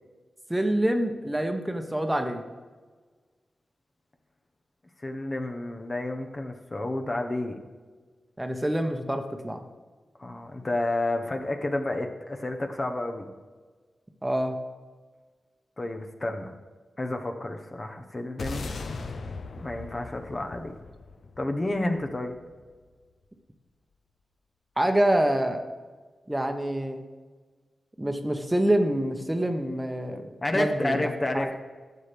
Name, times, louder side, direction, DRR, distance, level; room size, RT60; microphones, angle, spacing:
voice 1, 0.5-2.5 8.4-9.6 14.2-14.6 24.8-25.6 26.3-27.0 28.0-31.1 31.3-31.5, right 1 dB, 15° right, 5 dB, 1.0 m, -26 dB
voice 2, 5.0-7.6 10.2-13.3 15.8-16.5 17.0-18.7 19.6-20.8 21.4-22.4 30.4-31.6, left 2 dB, 35° left, 4 dB, 1.0 m, -30 dB
sound 1, 18.4-22.8, left 3 dB, 75° left, 0.7 m, -39 dB
12.0 x 7.4 x 3.4 m, 1.4 s
cardioid pair, 55°, 0 cm